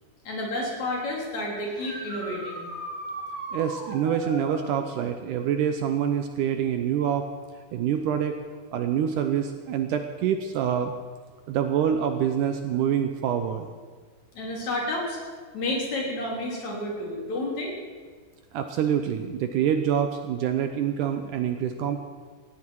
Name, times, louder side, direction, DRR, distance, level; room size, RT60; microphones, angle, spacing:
voice 1, 0.2-2.7 14.3-15.2 15.5-17.7, left 1 dB, 50° left, -2 dB, 4.6 m, -30 dB
sound 1, 1.7-4.6 8.0-8.1 10.1-10.2 16.4-16.5, right 2 dB, 35° right, 4.4 m, -37 dB
voice 2, 3.5-7.3 7.7-8.4 8.7-10.9 11.5-13.7 18.5-22.0, right 9 dB, 75° right, 7 dB, 2.0 m, -26 dB
18.5 x 15.5 x 4.7 m, 1.5 s
omnidirectional pair, 4.3 m